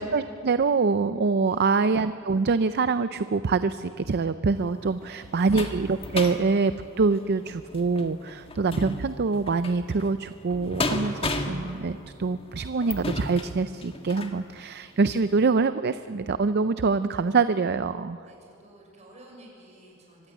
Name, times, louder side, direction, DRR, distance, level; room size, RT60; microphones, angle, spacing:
voice 1, 0.0-18.2, right 4 dB, 50° right, 12 dB, 0.5 m, -25 dB
voice 2, 1.4-1.8 5.0-5.6 18.2-20.3, right 1 dB, 35° right, -1 dB, 6.6 m, -52 dB
sound 1, 4.6-14.4 15.0-15.1 15.4-15.5, left 2 dB, 25° left, 1.7 m, -35 dB
24.5 x 15.5 x 9.9 m, 2.5 s
head